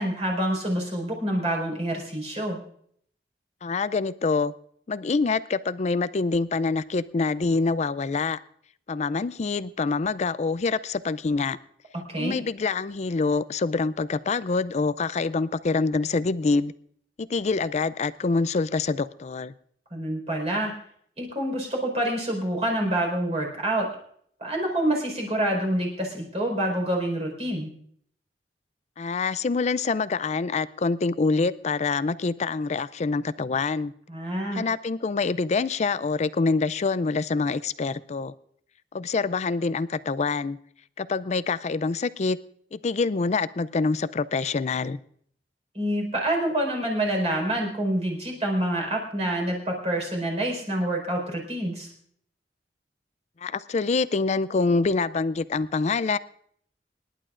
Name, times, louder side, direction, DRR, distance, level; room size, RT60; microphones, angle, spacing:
voice 1, 0.0-2.6 12.1-12.4 19.9-20.7 21.2-23.9 24.4-27.7 34.1-34.6 45.7-51.9, right 1 dB, 40° right, 0 dB, 4.7 m, -27 dB
voice 2, 3.6-4.5 4.9-8.4 8.9-11.6 12.2-16.7 17.2-19.5 29.0-33.9 34.5-38.3 38.9-40.6 41.0-42.4 42.7-45.0 53.4-56.2, left 4 dB, 40° left, 17 dB, 0.4 m, -26 dB
27.0 x 11.0 x 2.5 m, 0.64 s
head